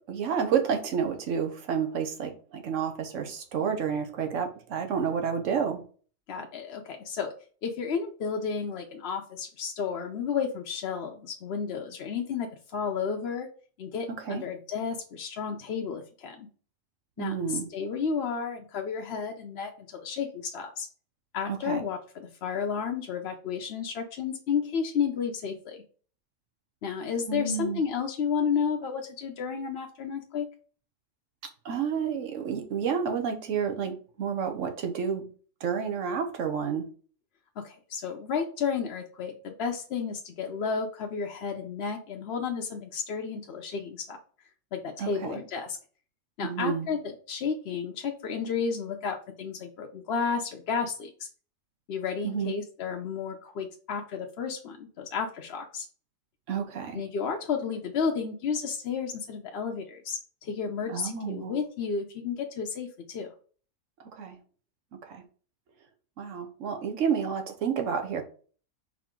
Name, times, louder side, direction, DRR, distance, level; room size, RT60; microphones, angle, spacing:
voice 1, 0.1-5.8 14.3-14.4 17.2-17.7 21.5-21.8 27.3-27.8 31.6-35.3 35.6-36.9 45.0-45.4 46.4-46.9 52.2-52.5 56.5-57.0 60.9-61.5 64.1-64.4 65.1-65.2 66.2-68.2, right 7 dB, 75° right, 5 dB, 1.1 m, -30 dB
voice 2, 6.3-7.3 7.6-12.5 12.7-13.5 13.8-16.5 17.2-20.9 21.3-25.8 26.8-30.5 37.6-44.2 44.7-45.8 46.4-51.3 51.9-55.8 56.9-63.3, left 6 dB, 60° left, 2 dB, 0.8 m, -32 dB
4.8 x 2.8 x 3.6 m, 0.40 s
omnidirectional pair, 1.3 m